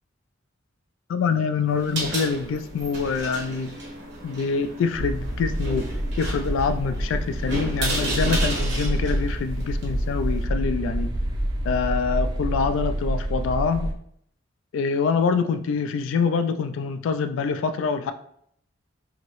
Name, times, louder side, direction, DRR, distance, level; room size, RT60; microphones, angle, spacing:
voice 1, 1.1-3.7 4.2-5.9 6.2-11.1 11.6-13.9 14.7-18.1, left 5 dB, 80° left, 10 dB, 0.3 m, -25 dB
sound 1, 1.7-10.4, right 2 dB, 65° right, 0.9 m, -33 dB
sound 2, 4.9-13.9, equal, 20° right, 0.3 m, -27 dB
2.9 x 2.6 x 3.1 m, 0.69 s
head